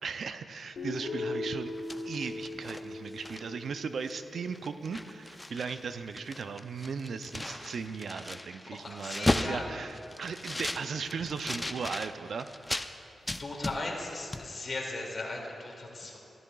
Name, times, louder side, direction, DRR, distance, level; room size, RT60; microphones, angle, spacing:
voice 1, 0.0-1.7 2.0-12.5, right 5 dB, 70° right, 10 dB, 0.5 m, -37 dB
Guitar, 0.8-4.7, left 2 dB, 70° left, 1.4 m, -39 dB
sound 1, 1.6-3.7 4.1-4.2 4.5-5.8 6.1-12.9 13.3-14.1 14.3-14.5, left 1 dB, 15° left, 0.5 m, -36 dB
voice 2, 8.7-9.8 13.4-16.2, left 2 dB, 50° left, -1 dB, 2.3 m, -37 dB
15.0 x 13.0 x 2.3 m, 2.8 s
cardioid pair, 55°, 0 cm